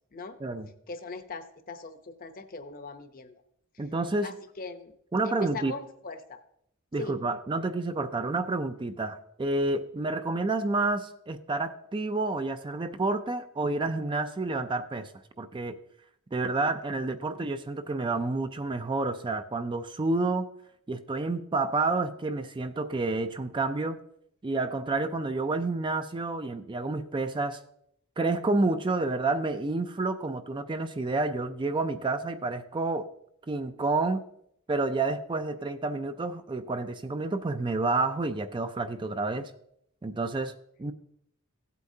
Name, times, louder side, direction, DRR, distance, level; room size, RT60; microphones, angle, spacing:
voice 1, 0.9-3.3 4.2-4.9 5.2-6.4 7.0-7.2, left 3 dB, 40° left, 9 dB, 0.7 m, -40 dB
voice 2, 3.8-4.3 5.1-5.7 6.9-15.1 15.4-15.8 16.3-20.5 20.9-24.0 24.4-27.6 28.2-33.1 33.5-34.2 34.7-39.5 40.0-40.5 40.8-40.9, right 3 dB, 20° right, 9 dB, 0.4 m, -29 dB
16.0 x 8.2 x 2.7 m, 0.73 s
head